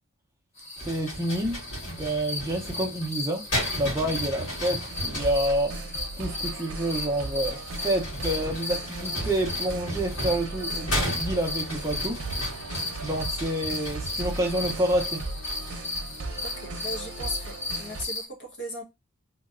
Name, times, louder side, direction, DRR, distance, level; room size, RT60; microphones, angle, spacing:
sound 1, 0.6-18.2, left 2 dB, 30° left, 1.3 m, -36 dB
sound 2, 0.8-5.6 7.3-15.9, equal, 85° left, 1.7 m, -35 dB
voice 1, 0.9-1.6 1.9-3.5 3.7-5.8 6.2-12.2 13.0-15.2, right 1 dB, 15° right, 0.6 m, -28 dB
sound 3, 4.9-18.0, right 2 dB, 85° right, 0.7 m, -37 dB
voice 2, 16.4-18.8, equal, 55° left, 1.1 m, -37 dB
3.0 x 2.8 x 2.4 m
head